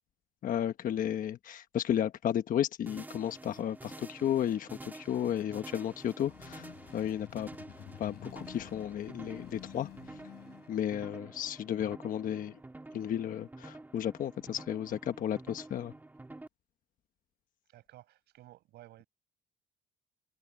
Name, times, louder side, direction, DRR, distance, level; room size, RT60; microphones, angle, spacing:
voice 1, 0.4-7.5 8.0-9.9 10.7-12.5 12.9-15.9, left 10 dB, 55° left, 1.1 m, -33 dB
sound 1, 2.9-16.5, right 2 dB, 10° right, 1.5 m, -49 dB
sound 2, 5.9-11.1, left 13 dB, 70° left, 7.9 m, -51 dB
voice 2, 17.7-19.1, right 15 dB, 80° right, 7.8 m, -55 dB
cardioid pair, 110°, 17 cm